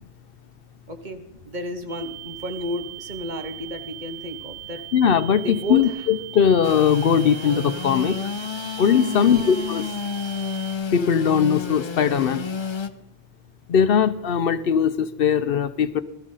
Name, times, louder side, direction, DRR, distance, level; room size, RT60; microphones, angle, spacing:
voice 1, 0.9-4.8 5.4-5.8 9.1-9.5, equal, 45° right, 7 dB, 1.3 m, -32 dB
sound 1, 1.9-10.7, right 20 dB, 75° right, 4.9 m, -39 dB
voice 2, 4.9-8.2 8.8-9.8 10.9-12.4 13.7-16.0, left 7 dB, 65° left, 13 dB, 0.8 m, -20 dB
Engine / Sawing, 6.6-12.9, left 6 dB, 35° left, 0.5 m, -31 dB
15.5 x 13.5 x 3.8 m, 0.92 s
omnidirectional pair, 1.1 m